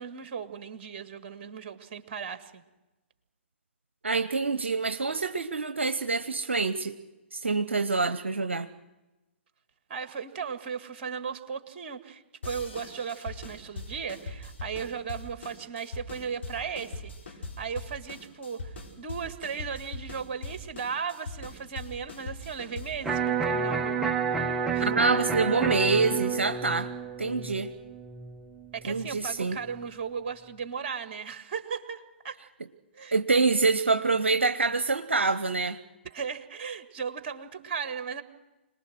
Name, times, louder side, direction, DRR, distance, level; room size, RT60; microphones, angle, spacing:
voice 1, 0.0-2.6 9.9-24.1 24.7-24.9 28.7-32.4 32.9-33.1 36.0-38.2, right 6 dB, 40° right, 9 dB, 1.9 m, -36 dB
voice 2, 4.0-7.0 7.3-8.7 24.8-26.9 27.2-27.7 28.8-29.6 33.1-35.8, right 4 dB, 75° right, 10 dB, 0.9 m, -26 dB
sound 1, 12.4-23.1, left 2 dB, 70° left, 5.4 m, -41 dB
Electric guitar, 23.0-29.1, right 5 dB, 5° right, 0.9 m, -30 dB
26.5 x 20.0 x 6.3 m, 1.0 s
figure-of-eight pair, 120°, 7 cm